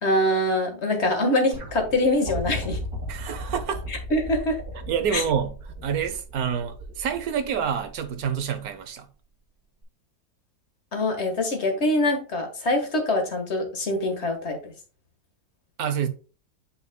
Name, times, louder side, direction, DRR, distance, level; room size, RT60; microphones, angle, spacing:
voice 1, 0.0-2.8 3.9-4.6 5.1-5.2 10.9-14.7, left 1 dB, 35° left, 1.7 m, -24 dB
sound 1, 1.5-8.7 9.8-9.9, right 2 dB, 40° right, 2.7 m, -37 dB
voice 2, 3.1-3.8 4.9-5.5 5.8-9.1 15.8-16.1, right 7 dB, 60° right, 1.1 m, -27 dB
8.3 x 5.7 x 2.2 m
omnidirectional pair, 2.1 m